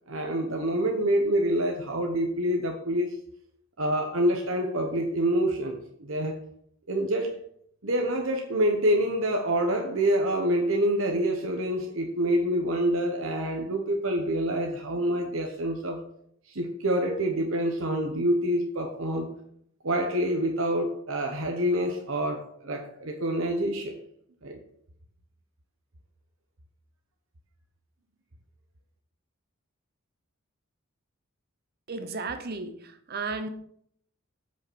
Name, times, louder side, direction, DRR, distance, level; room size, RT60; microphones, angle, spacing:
voice 1, 0.1-3.2 3.8-6.3 6.9-7.4 7.8-16.0 16.5-19.3 19.8-23.9 24.4-24.6, right 1 dB, 65° right, 1.1 m, -27 dB
voice 2, 31.9-33.5, right 3 dB, 45° right, 0.9 m, -34 dB
7.8 x 5.7 x 6.3 m
head